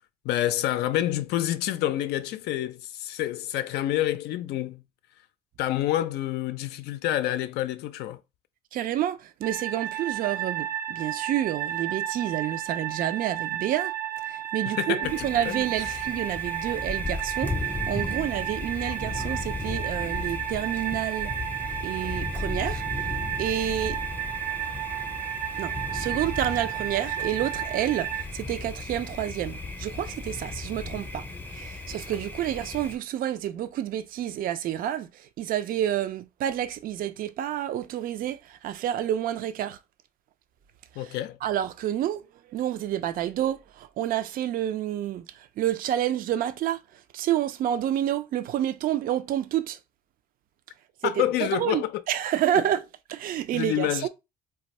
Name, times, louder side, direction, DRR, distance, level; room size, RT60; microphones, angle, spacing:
voice 1, 0.2-4.8 5.6-8.2 14.6-15.7 41.0-41.4 51.0-52.0 52.5-52.6 53.5-54.1, left 13 dB, 80° left, 0.4 m, -28 dB
voice 2, 8.7-13.9 14.3-17.5 17.9-21.3 21.8-22.8 23.4-24.0 25.6-31.2 31.5-35.1 35.4-39.8 41.4-42.2 42.5-45.3 45.6-46.8 47.1-49.8 51.0-51.1 51.4-52.8 53.1-54.1, right 11 dB, 55° right, 0.4 m, -29 dB
sound 1, 9.4-28.2, right 12 dB, 90° right, 1.0 m, -33 dB
Thunder, 15.0-33.0, left 2 dB, 10° left, 0.5 m, -35 dB
2.5 x 2.3 x 4.1 m
cardioid pair, 110°, 17 cm